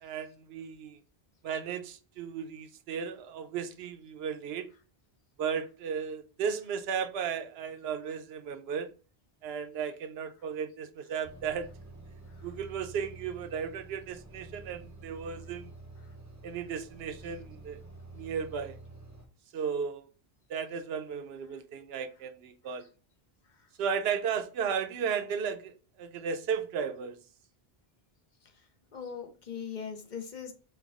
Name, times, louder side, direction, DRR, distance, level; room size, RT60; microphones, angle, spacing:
voice 1, 0.0-1.0 1.4-4.7 5.4-8.9 9.4-11.7 12.4-15.7 16.4-17.8 18.1-18.8 19.5-20.1 20.5-22.9 23.8-25.7 26.0-27.2, right 7 dB, 75° right, 0.8 m, -35 dB
sound 1, 11.2-19.2, right 2 dB, 20° right, 0.6 m, -49 dB
voice 2, 28.9-30.5, left 7 dB, 50° left, 0.8 m, -40 dB
4.6 x 2.3 x 3.5 m
omnidirectional pair, 1.0 m